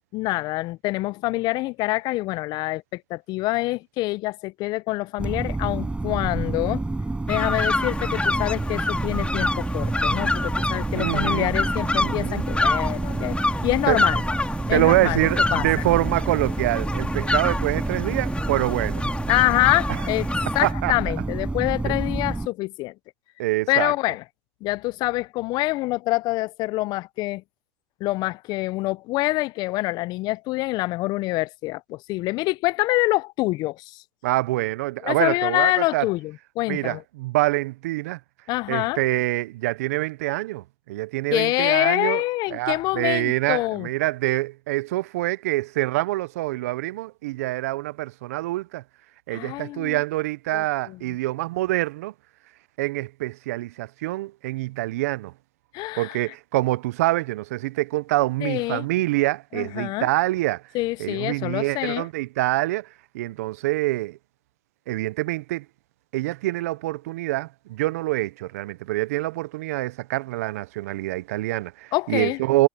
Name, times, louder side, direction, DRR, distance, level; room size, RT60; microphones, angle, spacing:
voice 1, 0.1-6.8 7.3-13.4 13.6-14.2 14.7-15.6 19.3-20.3 20.5-22.9 23.7-24.2 24.6-27.4 28.0-34.0 35.0-37.0 38.5-39.2 41.3-43.9 49.3-50.0 50.5-51.0 55.7-56.2 58.4-58.9 59.5-60.1 60.7-62.1 71.9-72.4, left 19 dB, 60° left, 0.6 m, -26 dB
sound 1, 5.2-22.5, right 2 dB, 15° right, 6.5 m, -28 dB
sound 2, 7.3-20.7, left 2 dB, 15° left, 3.1 m, -28 dB
voice 2, 10.9-11.5 12.0-12.5 13.9-14.0 14.7-19.0 19.9-20.0 20.6-20.9 21.8-21.9 23.4-23.9 34.2-36.1 36.7-38.2 38.7-42.2 42.5-48.8 49.3-52.1 52.8-55.3 56.0-60.6 61.0-64.2 64.9-65.7 66.1-72.7, right 18 dB, 80° right, 0.6 m, -25 dB
hypercardioid pair, 80°, 8 cm